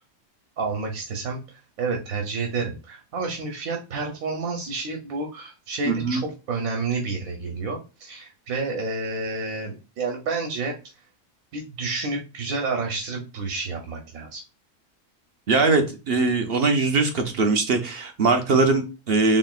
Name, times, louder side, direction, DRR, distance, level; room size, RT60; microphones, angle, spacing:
voice 1, 0.6-1.4 1.8-10.7 11.5-14.4, right 3 dB, 85° right, 2 dB, 1.3 m, -29 dB
voice 2, 5.9-6.2 15.5-19.4, right 3 dB, 55° right, 5 dB, 0.7 m, -21 dB
4.2 x 3.6 x 2.3 m, 0.31 s
omnidirectional pair, 1.4 m